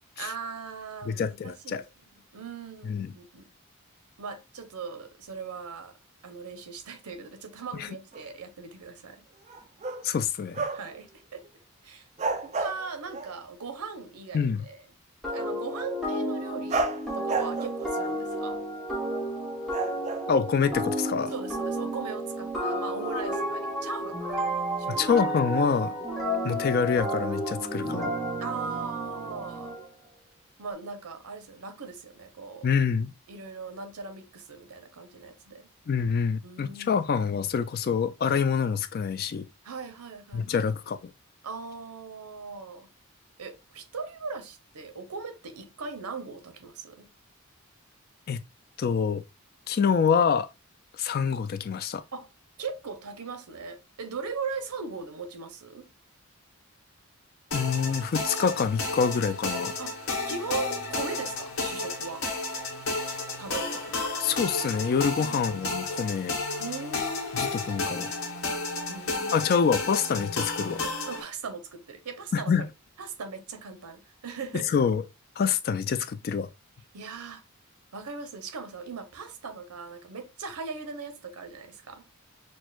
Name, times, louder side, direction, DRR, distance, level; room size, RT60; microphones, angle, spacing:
voice 1, 0.2-1.8 2.3-3.5 4.2-6.0 6.2-9.2 10.7-11.5 11.8-12.1 12.4-14.8 15.3-16.9 17.1-18.6 21.3-25.2 28.4-29.8 30.6-32.7 33.3-35.7 36.4-37.0 39.6-40.7 41.4-42.9 43.4-47.1 52.1-52.3 52.6-55.9 59.8-60.0 60.3-62.3 63.4-64.2 65.2-65.5 66.6-67.7 68.9-69.6 71.0-72.7 73.0-74.7 76.9-77.4 77.9-82.1, right 5 dB, 90° right, 0.8 m, -39 dB
voice 2, 1.1-1.8 2.8-3.1 7.8-7.9 10.0-10.6 14.3-14.6 20.3-21.3 24.9-25.9 26.4-28.1 32.6-33.1 35.9-39.5 40.3-41.0 48.3-48.4 48.8-49.2 49.7-50.5 51.0-52.0 57.5-59.7 64.2-66.4 67.3-68.1 69.3-70.8 72.3-72.6 74.5-75.0 75.4-76.5, left 6 dB, 45° left, 0.3 m, -26 dB
sound 1, 8.1-8.3 9.4-10.1 10.5-11.0 11.4-11.5 12.2-13.4 16.7-18.7 19.7-20.9, right 3 dB, 30° right, 0.4 m, -32 dB
sound 2, 15.2-29.9, right 1 dB, ahead, 0.9 m, -32 dB
sound 3, 57.5-71.2, left 3 dB, 70° left, 1.2 m, -32 dB
6.1 x 2.1 x 2.3 m
head